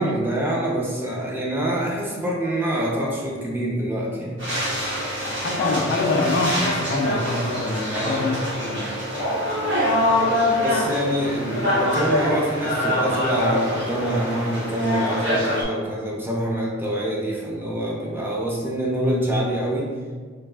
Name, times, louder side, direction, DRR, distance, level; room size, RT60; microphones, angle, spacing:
voice 1, 0.0-4.4 7.9-8.3 10.6-19.9, right 1 dB, 10° right, -3 dB, 0.5 m, -25 dB
sound 1, 4.4-15.6, left 1 dB, 65° right, 1.2 m, -24 dB
voice 2, 5.2-9.0, left 2 dB, 50° left, 3 dB, 0.3 m, -25 dB
3.3 x 2.5 x 2.2 m, 1.5 s
head